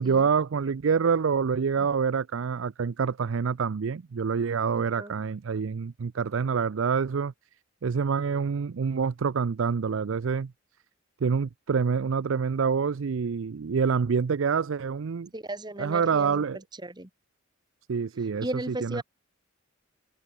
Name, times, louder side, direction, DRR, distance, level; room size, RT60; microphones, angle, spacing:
voice 1, 0.0-7.3 7.8-10.5 11.2-15.3 15.8-16.6 17.9-18.5 18.8-19.0, right 6 dB, 70° right, 0.5 m, -26 dB
voice 2, 4.7-5.1 15.3-16.4 16.8-17.1 18.4-19.0, right 1 dB, 20° right, 1.9 m, -36 dB
head